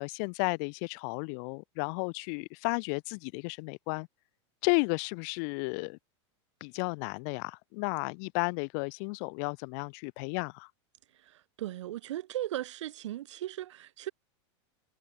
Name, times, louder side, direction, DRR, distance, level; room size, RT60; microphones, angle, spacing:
voice 1, 0.0-4.1 4.6-6.0 6.6-10.7, left 38 dB, 35° left, 1.1 m, -33 dB
voice 2, 11.1-14.1, right 13 dB, 80° right, 1.3 m, -37 dB
supercardioid pair, 175°, 15 cm